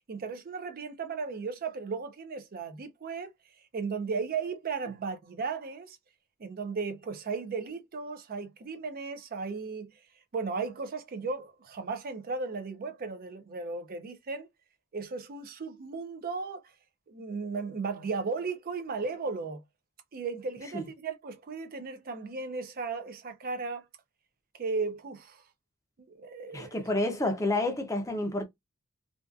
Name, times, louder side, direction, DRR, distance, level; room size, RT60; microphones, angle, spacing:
voice 1, 0.1-3.3 3.7-6.0 6.4-9.9 10.3-14.5 14.9-16.6 17.1-19.6 20.1-23.9 24.5-25.4 26.0-26.9, right 4 dB, 40° right, 0.4 m, -35 dB
voice 2, 26.5-28.4, left 2 dB, 15° left, 0.5 m, -29 dB
2.5 x 2.3 x 2.3 m
head